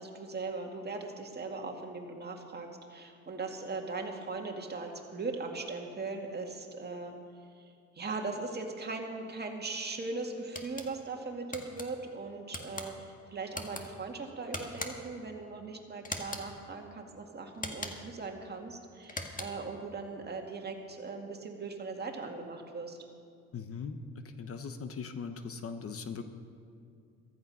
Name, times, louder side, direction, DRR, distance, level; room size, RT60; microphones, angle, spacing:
voice 1, 0.0-7.1 7.6-23.0, right 3 dB, 35° right, 2 dB, 2.1 m, -39 dB
sound 1, 10.5-10.9 11.5-11.9 12.5-12.9 13.5-13.8 14.5-15.1 16.0-16.5 17.5-18.1 19.0-19.7, left 2 dB, 25° left, 1.7 m, -40 dB
voice 2, 23.5-26.2, left 5 dB, 50° left, 9 dB, 1.1 m, -40 dB
14.5 x 14.0 x 5.6 m, 2.4 s
cardioid pair, 90°, 30 cm